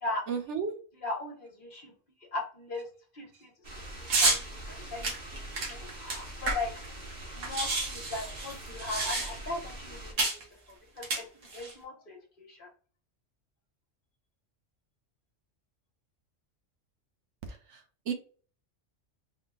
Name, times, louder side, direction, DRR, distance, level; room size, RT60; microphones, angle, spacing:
voice 1, 0.3-0.7 18.1-18.2, right 6 dB, 75° right, 7 dB, 0.9 m, -31 dB
voice 2, 0.9-1.9 2.3-2.9 3.1-3.5 4.0-6.7 7.3-10.2 10.9-12.7, left 2 dB, 45° left, 0 dB, 1.1 m, -38 dB
sound 1, 3.6-10.1, right 1 dB, 55° right, 1.0 m, -43 dB
sound 2, 4.1-4.4 5.0-6.9 7.1-7.2 7.4-9.6 10.2-10.4 11.0-11.7, right 2 dB, 90° right, 1.4 m, -29 dB
3.8 x 2.2 x 3.5 m, 0.41 s
omnidirectional pair, 1.3 m